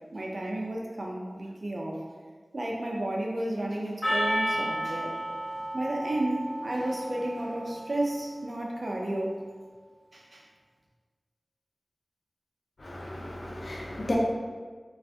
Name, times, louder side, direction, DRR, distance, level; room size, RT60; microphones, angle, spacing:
voice 1, 0.1-2.0 2.5-5.2 5.7-9.4 10.1-10.4, right 1 dB, 60° right, -1 dB, 0.5 m, -32 dB
Percussion, 4.0-8.6, equal, 35° left, 1.1 m, -32 dB
voice 2, 12.8-14.2, left 1 dB, 70° left, -3 dB, 0.5 m, -34 dB
2.4 x 2.4 x 3.4 m, 1.5 s
wide cardioid pair, 50°, 0 cm